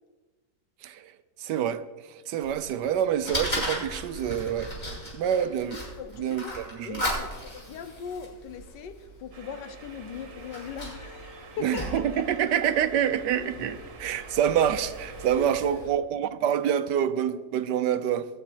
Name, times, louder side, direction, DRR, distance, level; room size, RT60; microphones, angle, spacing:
voice 1, 1.4-1.8 2.1-4.7 5.1-5.8 6.1-7.1 11.6-18.3, right 9 dB, 80° right, 1.3 m, -27 dB
Fire, 2.4-15.9, equal, 35° left, 5.6 m, -37 dB
voice 2, 6.0-12.0 15.3-15.8, left 6 dB, 85° left, 1.5 m, -39 dB
sound 1, 9.3-15.5, right 5 dB, 50° right, 1.5 m, -48 dB
20.0 x 9.2 x 4.5 m
omnidirectional pair, 1.9 m